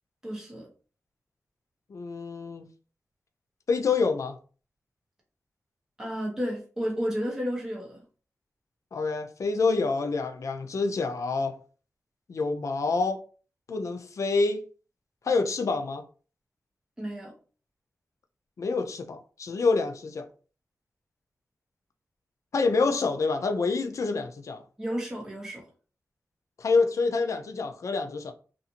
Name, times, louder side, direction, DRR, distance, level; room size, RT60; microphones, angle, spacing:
voice 1, 0.2-0.7 6.0-8.0 17.0-17.3 24.8-25.6, equal, 10° right, 0.9 m, -32 dB
voice 2, 1.9-2.7 3.7-4.4 8.9-11.6 12.3-13.2 13.7-14.6 15.2-16.0 18.6-20.3 22.5-24.6 26.6-28.3, left 4 dB, 65° left, 0.4 m, -27 dB
2.6 x 2.5 x 2.8 m
wide cardioid pair, 105°, 6 cm